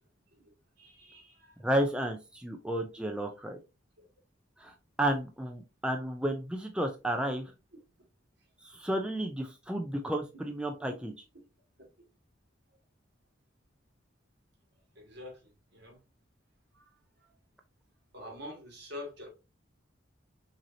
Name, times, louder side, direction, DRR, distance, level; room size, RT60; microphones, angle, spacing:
voice 1, 0.8-1.6 4.0-4.1 8.4-8.5 11.0-11.4 12.7-12.8 15.0-16.0 16.7-17.3 18.1-19.3, left 1 dB, 60° right, 2.0 m, -47 dB
voice 2, 1.6-3.6 4.6-7.4 8.6-11.1, right 1 dB, 5° right, 0.4 m, -32 dB
5.9 x 2.8 x 2.7 m
head